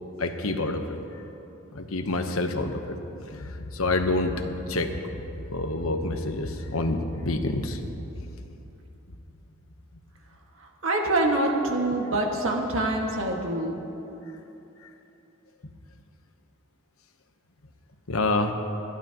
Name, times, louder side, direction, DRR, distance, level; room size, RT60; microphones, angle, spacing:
voice 1, 0.2-1.0 1.7-3.0 3.3-5.2 5.5-7.9 18.1-18.5, left 2 dB, 90° left, 5 dB, 1.1 m, -27 dB
voice 2, 10.6-13.8, right 2 dB, 70° right, 0 dB, 1.9 m, -25 dB
29.0 x 12.0 x 3.0 m, 3.0 s
head